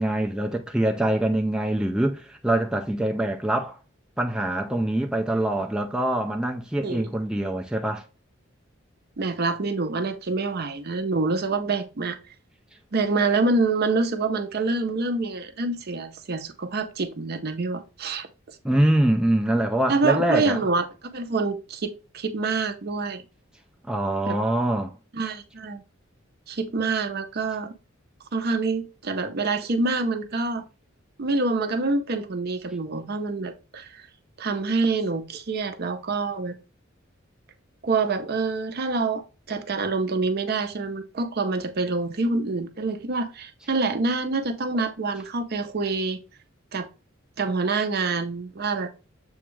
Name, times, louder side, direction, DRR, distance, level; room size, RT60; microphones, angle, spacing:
voice 1, 0.0-3.8 4.2-8.0 18.6-20.6 23.9-25.0, right 1 dB, 5° right, 0.3 m, -24 dB
voice 2, 9.2-12.2 12.9-18.3 19.9-20.8 21.1-23.2 24.3-24.4 25.1-25.8 26.5-27.7 28.3-30.6 31.2-34.0 34.4-36.5 37.8-39.2 39.5-46.2 46.7-46.9 47.4-48.9, right 3 dB, 50° right, 0.6 m, -26 dB
7.0 x 2.3 x 3.1 m
head